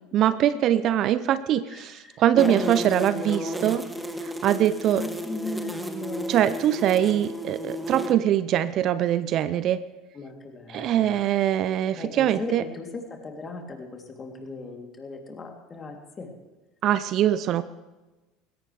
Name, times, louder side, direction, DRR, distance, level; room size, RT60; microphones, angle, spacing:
voice 1, 0.1-3.8 4.2-5.0 6.3-9.8 10.7-12.6 16.8-17.6, right 11 dB, 45° right, 15 dB, 0.6 m, -23 dB
voice 2, 1.7-2.9 3.1-3.8 4.9-6.4 10.1-11.1 12.0-16.3, left 3 dB, 25° left, 2 dB, 3.2 m, -37 dB
sound 1, 2.4-8.1, equal, 5° right, 1.5 m, -33 dB
21.0 x 17.0 x 3.5 m, 1.2 s
figure-of-eight pair, 70°, 0 cm